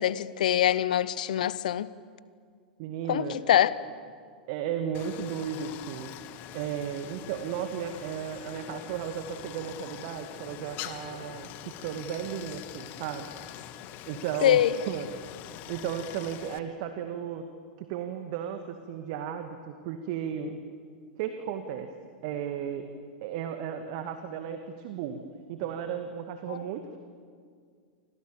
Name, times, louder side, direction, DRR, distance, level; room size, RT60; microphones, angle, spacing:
voice 1, 0.0-1.9 3.1-3.7 14.4-14.7 26.5-26.6, left 11 dB, 60° left, 1.0 m, -24 dB
voice 2, 2.8-3.6 4.5-6.1 6.5-13.3 14.0-15.1 15.7-17.5 17.8-20.6 21.2-21.9 22.2-22.9 23.2-25.2 25.5-27.0, right 8 dB, 45° right, 2.0 m, -35 dB
Stream, 4.9-16.6, left 12 dB, 40° left, 1.6 m, -44 dB
30.0 x 25.5 x 7.3 m
figure-of-eight pair, 95°, 5 cm